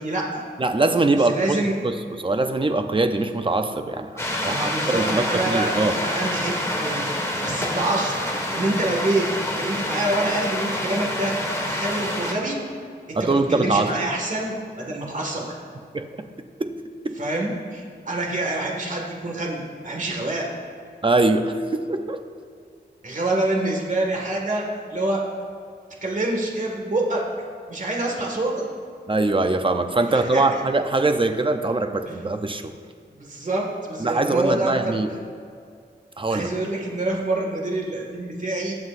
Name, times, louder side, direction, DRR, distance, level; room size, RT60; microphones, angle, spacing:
voice 1, 0.0-0.4 1.2-1.7 4.5-6.5 6.8-7.1 7.4-8.2 8.5-9.3 9.6-11.3 11.7-12.6 13.1-15.5 17.2-20.5 23.0-24.6 24.9-25.2 26.0-27.2 27.7-28.6 30.1-30.6 33.2-35.0 36.3-38.7, right 2 dB, 45° right, -1 dB, 2.0 m, -26 dB
voice 2, 0.6-1.4 1.8-1.9 2.2-6.0 13.2-13.9 15.9-16.1 16.6-16.7 17.0-17.2 21.0-22.2 29.1-32.7 34.0-35.1 36.2-36.5, right 2 dB, 30° right, 7 dB, 0.7 m, -22 dB
sound 1, 4.2-12.3, left 1 dB, 15° left, 1.7 m, -27 dB
21.0 x 7.8 x 2.6 m, 2.3 s
wide cardioid pair, 105°, 18 cm